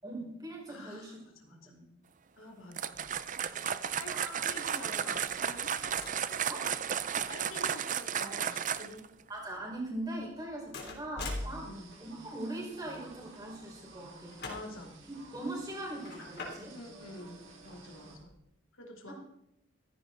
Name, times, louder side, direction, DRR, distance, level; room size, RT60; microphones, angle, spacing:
voice 1, 0.0-1.2 1.5-1.9 4.1-4.7 6.5-6.7 9.3-11.7 12.0-14.4 15.1-16.8 19.1-19.2, right 1 dB, 20° right, -2 dB, 5.0 m, -41 dB
voice 2, 0.7-1.7 2.4-3.0 4.0-4.1 4.5-5.7 7.1-9.1 11.6-11.9 14.4-14.9 16.7-18.3 18.7-19.1, left 1 dB, 75° left, 1 dB, 3.0 m, -47 dB
sound 1, 2.7-9.1, right 8 dB, 40° right, 0.6 m, -33 dB
sound 2, 2.9-18.4, left 2 dB, 50° left, 3.4 m, -48 dB
sound 3, 11.2-18.2, right 2 dB, 70° right, 4.4 m, -53 dB
15.5 x 15.0 x 4.0 m, 0.79 s
head